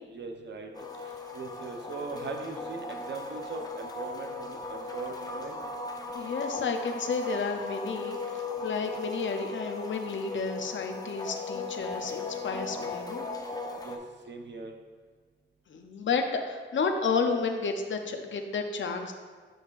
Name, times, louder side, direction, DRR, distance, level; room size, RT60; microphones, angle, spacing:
voice 1, 0.1-0.7 1.0-5.6 13.8-14.0 14.3-14.7, right 4 dB, 60° right, 4 dB, 0.7 m, -40 dB
sound 1, 0.7-14.0, left 3 dB, 20° left, 0.6 m, -38 dB
voice 2, 6.1-13.3 15.7-19.1, left 4 dB, 65° left, 5 dB, 0.6 m, -31 dB
7.7 x 6.2 x 2.5 m, 1.5 s
wide cardioid pair, 105°, 21 cm